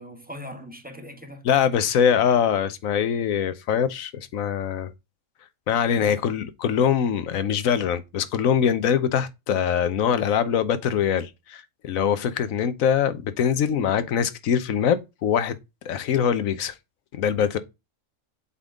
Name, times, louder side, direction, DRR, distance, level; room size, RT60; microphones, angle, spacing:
voice 1, 0.0-1.4 6.0-6.4 13.7-13.9, equal, 5° right, 1.3 m, -40 dB
voice 2, 1.4-4.9 5.7-15.6 15.8-16.7 17.1-17.6, left 8 dB, 90° left, 1.2 m, -23 dB
8.0 x 3.8 x 3.7 m
omnidirectional pair, 1.4 m